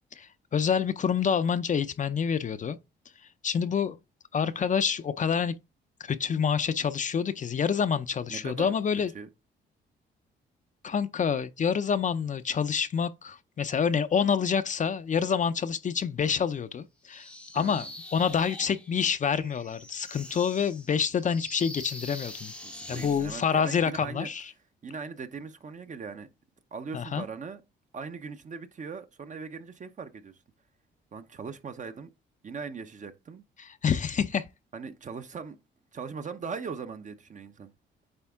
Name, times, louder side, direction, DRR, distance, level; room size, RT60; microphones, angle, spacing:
voice 1, 0.2-2.8 3.4-4.0 4.3-5.5 6.0-9.1 10.8-17.3 17.5-17.9 18.1-22.5 22.9-24.5 26.9-27.2 33.6-34.5, left 7 dB, 40° left, 0.5 m, -27 dB
voice 2, 8.3-8.7 9.1-9.3 17.5-17.9 22.6-24.3 24.8-26.3 26.7-27.6 27.9-30.3 31.1-32.1 32.4-33.4 34.7-35.6 35.9-37.7, right 5 dB, 40° right, 0.8 m, -39 dB
sound 1, 17.1-23.4, left 1 dB, 5° left, 0.7 m, -44 dB
8.9 x 3.5 x 3.5 m
cardioid pair, 90°, 20 cm